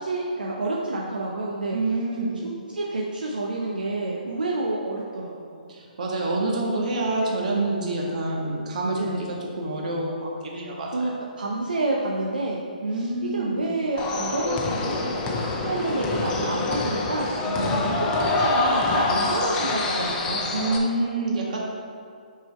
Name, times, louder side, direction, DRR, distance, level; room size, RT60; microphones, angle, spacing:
voice 1, 0.0-1.8 2.4-5.7 9.0-9.2 10.9-12.6 12.9-15.0 15.6-17.3 17.7-18.1 18.4-20.5, right 2 dB, 80° right, -2 dB, 0.7 m, -29 dB
voice 2, 1.7-2.3 5.7-11.1 12.8-13.7 17.4-17.9 20.5-21.6, right 2 dB, 55° right, -2 dB, 1.6 m, -27 dB
sound 1, 14.0-20.8, left 2 dB, 20° left, 0.7 m, -25 dB
6.2 x 4.8 x 4.3 m, 2.2 s
hypercardioid pair, 140°, 5 cm